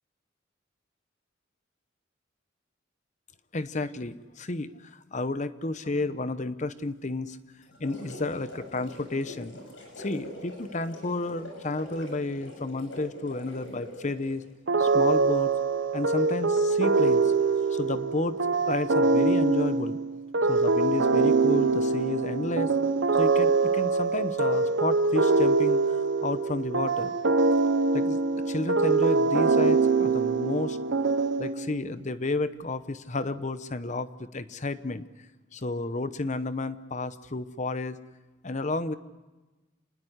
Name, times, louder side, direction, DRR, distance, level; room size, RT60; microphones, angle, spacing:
voice 1, 3.5-7.4 7.8-9.6 10.0-14.4 14.8-15.5 15.9-17.3 17.7-18.4 18.7-20.0 20.5-22.7 23.2-27.1 27.9-30.8 31.4-35.0 35.5-38.0 38.4-39.0, left 2 dB, 40° left, 13 dB, 0.9 m, -31 dB
sound 1, 7.6-14.4, left 1 dB, 80° left, 7.6 m, -44 dB
sound 2, 14.7-31.8, right 3 dB, 70° right, 1.0 m, -24 dB
27.0 x 20.0 x 8.0 m, 1.1 s
head